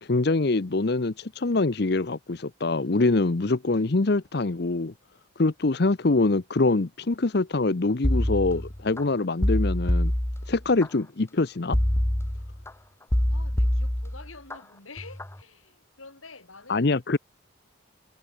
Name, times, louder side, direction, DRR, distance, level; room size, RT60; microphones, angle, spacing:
voice 1, 0.0-4.9 5.4-10.1 10.5-11.8 16.7-17.2, left 3 dB, 50° left, 0.7 m, -24 dB
sound 1, 8.0-9.0 9.4-10.9 11.7-12.7 13.1-14.6 15.0-15.4, left 1 dB, 15° left, 0.9 m, -25 dB
voice 2, 13.3-16.9, left 4 dB, 90° left, 7.2 m, -47 dB
head